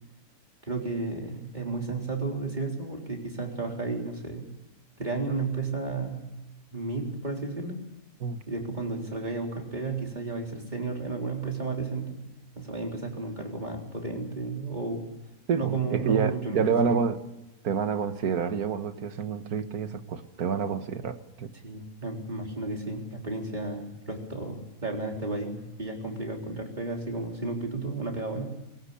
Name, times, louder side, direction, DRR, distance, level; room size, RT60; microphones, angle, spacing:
voice 1, 0.7-4.5 5.0-6.3 6.7-7.8 8.5-12.2 12.6-15.1 15.6-16.9 21.6-28.5, right 3 dB, 30° right, 1 dB, 4.1 m, -33 dB
voice 2, 15.5-17.2 17.6-21.5, right 6 dB, 80° right, 9 dB, 1.9 m, -28 dB
21.5 x 18.0 x 8.4 m, 1.0 s
omnidirectional pair, 1.5 m